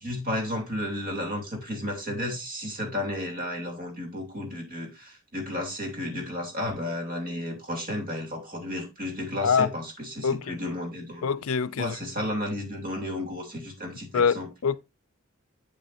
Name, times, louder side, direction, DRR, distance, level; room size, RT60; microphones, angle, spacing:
voice 1, 0.0-11.3 11.7-14.5, left 1 dB, 45° right, 3.0 m, -33 dB
voice 2, 9.4-9.7 10.2-10.6 11.2-12.0 14.1-14.8, left 6 dB, 70° left, 0.5 m, -25 dB
8.3 x 7.5 x 2.6 m
head